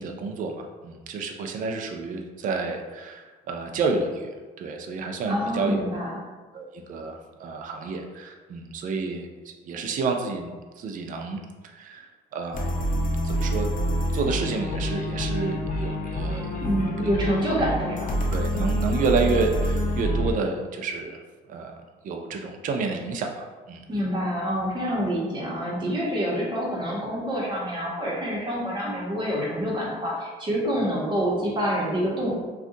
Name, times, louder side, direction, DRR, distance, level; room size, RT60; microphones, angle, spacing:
voice 1, 0.0-4.3 4.6-5.9 6.5-10.5 10.8-11.4 11.7-12.1 12.3-12.7 13.2-13.7 14.1-16.6 17.0-17.1 18.3-21.2 21.5-21.7 22.0-23.8, right 4 dB, 50° right, 4 dB, 0.4 m, -29 dB
voice 2, 5.3-6.2 16.6-18.1 23.9-32.3, equal, 25° right, -5 dB, 1.1 m, -27 dB
sound 1, 12.5-20.3, equal, 50° left, 0.6 m, -27 dB
2.6 x 2.4 x 3.7 m, 1.3 s
cardioid pair, 110°, 17 cm